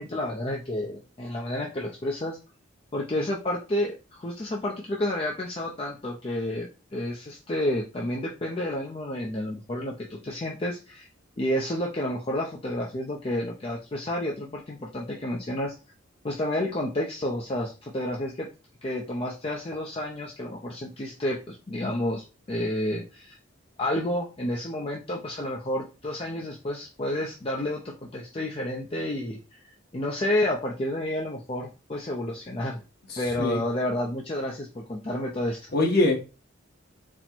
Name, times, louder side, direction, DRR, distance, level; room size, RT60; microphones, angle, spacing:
voice 1, 0.0-2.4 2.9-11.1 11.4-15.7 16.2-18.5 18.8-23.4 23.8-29.4 29.9-32.8 33.2-35.6, left 1 dB, 30° left, -2 dB, 0.5 m, -30 dB
voice 2, 33.1-33.6 35.7-36.2, left 2 dB, 50° left, 2 dB, 1.0 m, -23 dB
4.2 x 2.1 x 4.3 m, 0.31 s
head